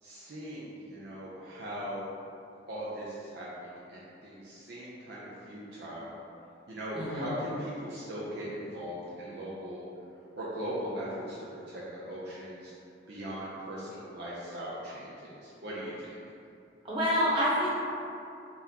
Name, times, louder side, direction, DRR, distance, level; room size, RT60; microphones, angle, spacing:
voice 1, 0.0-2.1 2.7-6.2 6.7-9.9 10.3-12.7 13.1-16.2, equal, 60° right, -7 dB, 0.6 m, -39 dB
voice 2, 6.9-7.3 16.8-17.7, equal, 30° right, -9 dB, 1.0 m, -27 dB
4.1 x 3.5 x 2.8 m, 2.6 s
head